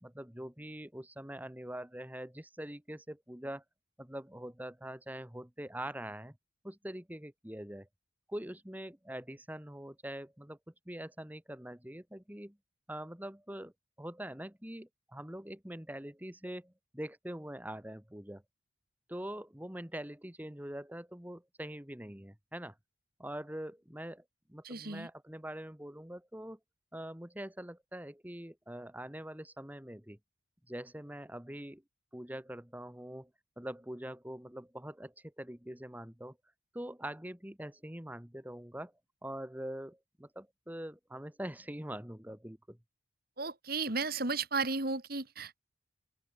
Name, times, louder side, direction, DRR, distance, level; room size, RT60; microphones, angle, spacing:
voice 1, 0.0-3.6 4.0-6.4 6.6-7.9 8.3-10.6 10.9-12.6 12.9-13.7 14.0-18.4 19.1-22.8 23.2-26.6 26.9-30.2 30.7-31.8 32.1-33.3 33.6-36.4 36.7-38.9 39.2-42.8, right 1 dB, 10° right, 1.4 m, -44 dB
voice 2, 24.6-25.1 43.4-45.6, right 4 dB, 50° right, 2.6 m, -34 dB
open air
head